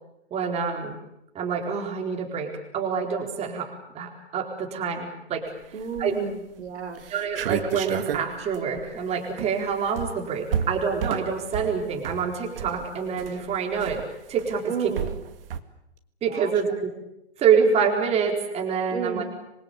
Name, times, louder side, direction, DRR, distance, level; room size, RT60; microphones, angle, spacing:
voice 1, 0.3-1.0 1.3-5.5 6.0-6.1 7.1-14.0 14.3-14.7 16.2-16.9 17.4-19.2, right 6 dB, 20° right, 2 dB, 4.3 m, -26 dB
voice 2, 5.7-7.0 14.6-15.1 16.3-16.5 18.9-19.2, right 5 dB, 80° right, 7 dB, 4.0 m, -32 dB
sound 1, 5.8-6.3 6.7-6.8 7.0-15.6, right 8 dB, 55° right, 2.1 m, -32 dB
27.0 x 23.0 x 8.5 m, 0.85 s
hypercardioid pair, 140°, 33 cm